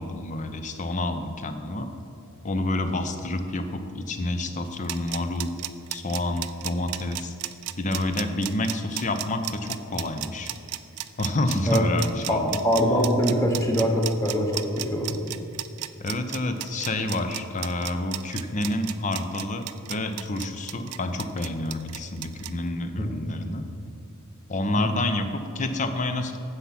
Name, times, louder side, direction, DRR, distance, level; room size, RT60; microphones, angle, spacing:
voice 1, 0.0-1.9 2.4-5.6 5.9-7.3 7.8-10.5 11.2-12.6 16.0-23.7 24.5-26.4, left 2 dB, 35° left, 8 dB, 0.6 m, -28 dB
sound 1, 4.7-22.5, right 14 dB, 85° right, 0.5 m, -34 dB
voice 2, 12.3-15.3 23.0-23.2 24.8-24.9, equal, 15° left, 1 dB, 1.2 m, -23 dB
9.9 x 7.2 x 5.9 m, 2.7 s
head